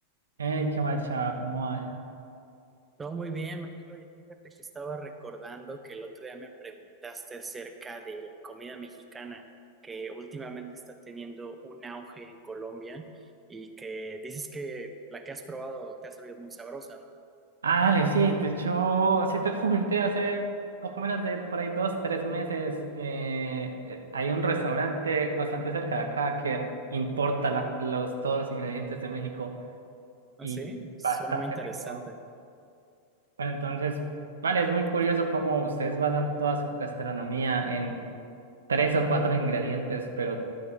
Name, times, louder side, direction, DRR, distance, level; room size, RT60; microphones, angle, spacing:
voice 1, 0.4-1.9 17.6-20.5 20.8-29.5 30.4-30.6 31.0-31.4 31.8-32.0 33.4-34.1 34.4-38.0 38.7-40.4, right 4 dB, 70° right, 4 dB, 0.8 m, -28 dB
voice 2, 3.0-9.5 9.8-17.1 30.4-32.2, right 3 dB, 15° right, 5 dB, 0.5 m, -40 dB
11.5 x 4.1 x 6.8 m, 2.4 s
figure-of-eight pair, 90°, 0 cm